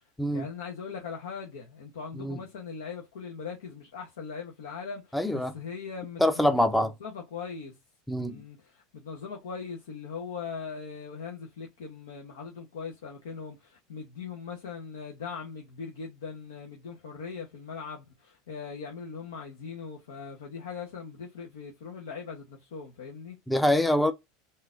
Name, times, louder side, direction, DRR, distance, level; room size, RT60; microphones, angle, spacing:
voice 1, 0.3-7.8 8.2-23.4, left 5 dB, 85° left, 0.9 m, -40 dB
voice 2, 5.1-5.5 6.2-6.9 8.1-8.4 23.5-24.1, left 1 dB, 5° left, 0.5 m, -24 dB
3.8 x 2.6 x 2.5 m
supercardioid pair, 105°, 0 cm